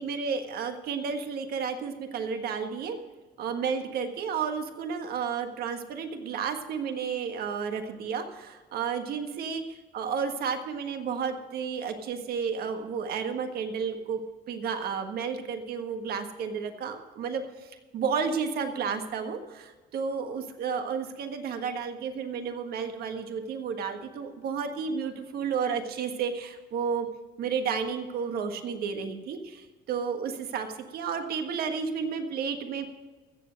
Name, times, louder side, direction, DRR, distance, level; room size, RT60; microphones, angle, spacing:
voice 1, 0.0-3.0 3.4-14.2 14.5-27.1 27.4-30.7 30.9-32.9, right 6 dB, 65° right, 7 dB, 1.5 m, -32 dB
15.5 x 7.4 x 6.4 m, 1.3 s
cardioid pair, 110°, 17 cm